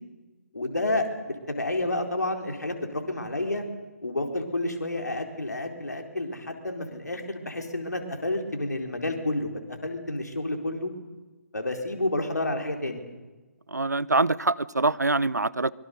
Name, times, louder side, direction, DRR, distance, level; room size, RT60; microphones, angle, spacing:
voice 1, 0.5-3.6 4.0-10.9 11.5-13.0, left 2 dB, 80° left, 4.3 m, -30 dB
voice 2, 13.7-15.7, right 3 dB, 85° right, 0.8 m, -24 dB
24.5 x 23.5 x 6.8 m
figure-of-eight pair, 135°, 9 cm